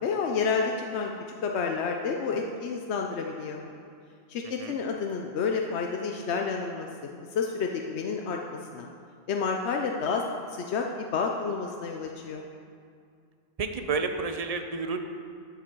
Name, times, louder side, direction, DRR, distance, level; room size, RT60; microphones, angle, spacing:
voice 1, 0.0-1.1 1.4-3.6 4.3-6.9 7.3-8.9 9.3-10.2 10.5-12.4, left 5 dB, 80° left, 2 dB, 1.0 m, -30 dB
voice 2, 13.6-15.0, right 4 dB, 40° right, 6 dB, 0.7 m, -30 dB
12.0 x 7.5 x 4.6 m, 2.3 s
omnidirectional pair, 1.1 m